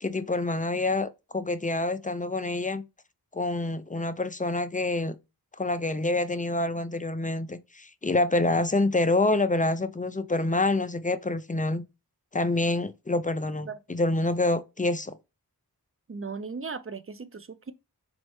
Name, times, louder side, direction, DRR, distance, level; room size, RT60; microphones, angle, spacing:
voice 1, 0.0-2.8 3.3-5.2 5.6-11.8 12.3-15.2, left 2 dB, 20° left, 0.4 m, -27 dB
voice 2, 16.1-17.7, right 4 dB, 35° right, 0.5 m, -37 dB
4.2 x 3.1 x 3.1 m
wide cardioid pair, 45°, 39 cm